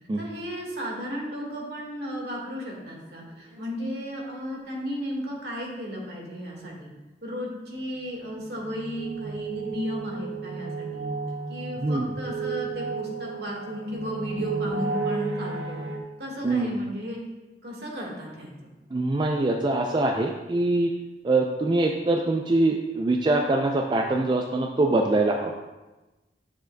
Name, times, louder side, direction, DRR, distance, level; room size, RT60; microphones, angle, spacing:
voice 1, 0.2-6.9 7.2-11.1 11.5-15.9 16.2-17.2 17.6-18.7, equal, 65° right, -2 dB, 1.7 m, -34 dB
sound 1, 3.2-3.3 3.5-3.6 3.9-4.0 8.2-16.0, right 4 dB, 80° right, 0.9 m, -33 dB
voice 2, 18.9-20.9 21.2-25.6, right 2 dB, 25° right, 2 dB, 0.4 m, -23 dB
9.2 x 7.1 x 2.2 m, 1.1 s
head